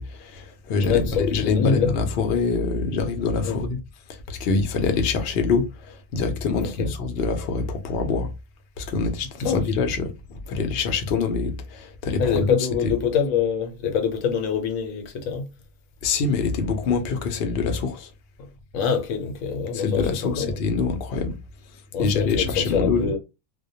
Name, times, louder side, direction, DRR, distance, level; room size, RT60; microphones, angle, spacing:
voice 1, 0.0-3.8 4.1-8.3 8.8-12.6 12.8-12.9 16.0-18.1 19.7-21.4 22.0-23.1, left 4 dB, 60° left, 0.7 m, -25 dB
voice 2, 0.8-1.9 3.4-3.6 6.6-6.9 9.4-9.6 12.2-15.5 18.4-18.5 18.7-20.5 21.9-23.2, left 6 dB, 85° left, 1.0 m, -25 dB
2.2 x 2.1 x 2.6 m
omnidirectional pair, 1.4 m